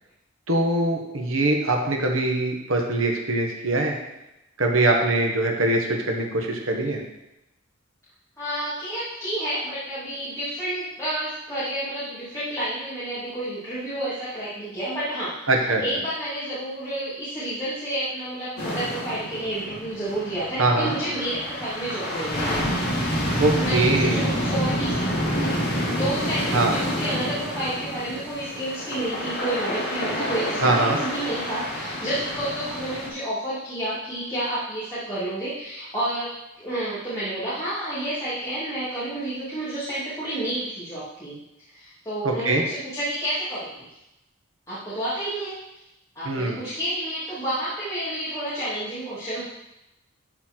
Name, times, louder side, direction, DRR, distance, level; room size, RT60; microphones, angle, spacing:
voice 1, 0.5-4.0 4.6-7.0 15.5-15.8 20.6-20.9 23.4-24.3 26.5-26.7 30.6-31.0 42.2-42.6 46.2-46.6, right 2 dB, 75° right, 1 dB, 1.5 m, -22 dB
voice 2, 8.4-15.3 15.8-22.8 23.6-41.4 41.7-43.9 44.7-45.5 46.1-49.4, right 1 dB, 15° left, -11 dB, 2.5 m, -30 dB
sound 1, 18.6-33.1, equal, 55° left, 2.5 m, -28 dB
12.0 x 4.4 x 4.6 m, 0.90 s
head